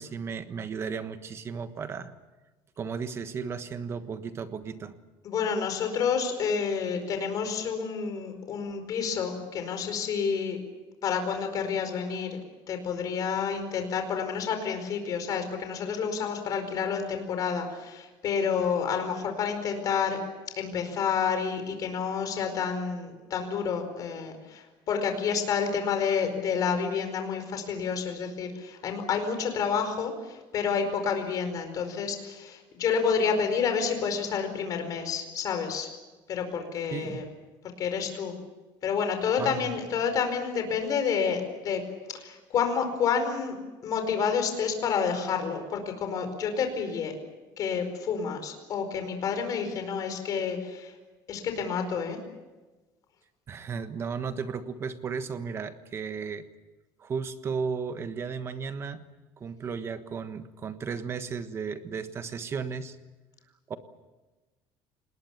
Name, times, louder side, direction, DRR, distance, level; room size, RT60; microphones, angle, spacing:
voice 1, 0.0-2.1 2.8-4.9 36.9-37.2 39.4-39.7 53.5-56.5 57.0-59.0 59.4-63.0 63.7-63.8, right 5 dB, 25° right, 10 dB, 1.4 m, -34 dB
voice 2, 5.2-10.6 11.0-12.3 12.7-20.2 20.6-35.9 36.3-37.2 37.8-38.4 38.8-41.9 42.1-43.5 43.8-47.1 47.6-50.9 51.3-52.2, left 6 dB, 40° left, 6 dB, 4.8 m, -29 dB
28.0 x 20.0 x 7.2 m, 1.2 s
cardioid pair, 170°, 10 cm